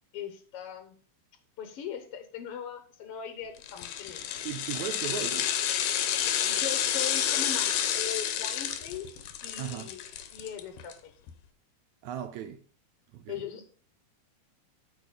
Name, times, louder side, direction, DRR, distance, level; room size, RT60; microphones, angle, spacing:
voice 1, 0.1-0.9 1.6-4.3 6.4-10.0 10.3-11.1 13.3-13.7, left 8 dB, 65° left, 1.5 m, -40 dB
sound 1, 3.6-10.9 11.3-11.4, left 10 dB, 80° left, 2.8 m, -30 dB
voice 2, 4.4-5.5 9.6-9.9 12.0-12.6 13.1-13.4, right 9 dB, 75° right, 1.7 m, -36 dB
12.0 x 4.7 x 5.3 m
omnidirectional pair, 4.3 m